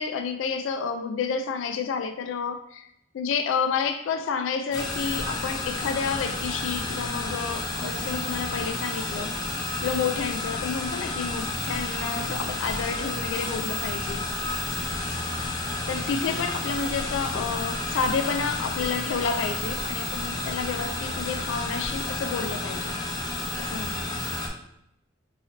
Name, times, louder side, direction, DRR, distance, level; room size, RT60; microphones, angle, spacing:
voice 1, 0.0-2.9 3.1-9.3 9.8-14.2 15.9-22.9 23.6-24.0, left 5 dB, 85° left, 7 dB, 0.3 m, -30 dB
sound 1, 4.7-24.5, left 2 dB, 20° left, 0.5 m, -31 dB
3.9 x 2.6 x 2.8 m, 0.79 s
head